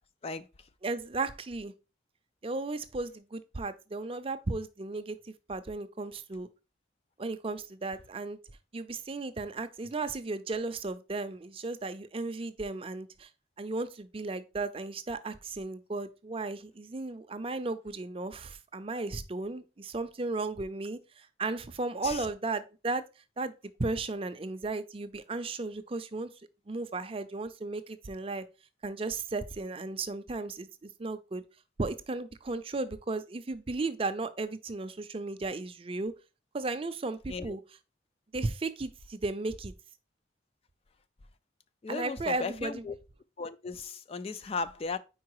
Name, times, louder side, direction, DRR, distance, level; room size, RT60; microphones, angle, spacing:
voice 1, 0.8-1.7 2.4-6.5 7.2-8.4 8.7-13.3 13.6-23.1 23.4-23.5 23.8-26.3 26.7-28.4 28.8-31.4 31.8-36.1 36.5-37.6 38.3-39.7 41.9-42.8, right 3 dB, 30° right, 0.5 m, -35 dB
voice 2, 41.8-43.0 43.4-45.0, left 4 dB, 30° left, 0.3 m, -36 dB
4.7 x 4.7 x 4.7 m
head